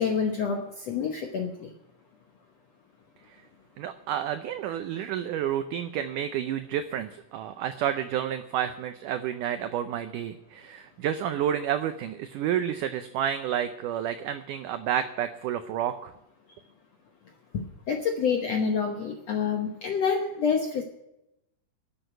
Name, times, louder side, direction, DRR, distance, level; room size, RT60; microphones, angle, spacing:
voice 1, 0.0-1.7 17.5-20.8, left 6 dB, 75° left, 3 dB, 1.5 m, -27 dB
voice 2, 3.8-16.1, right 10 dB, 85° right, 9 dB, 1.8 m, -30 dB
11.5 x 8.0 x 9.1 m, 0.85 s
omnidirectional pair, 4.4 m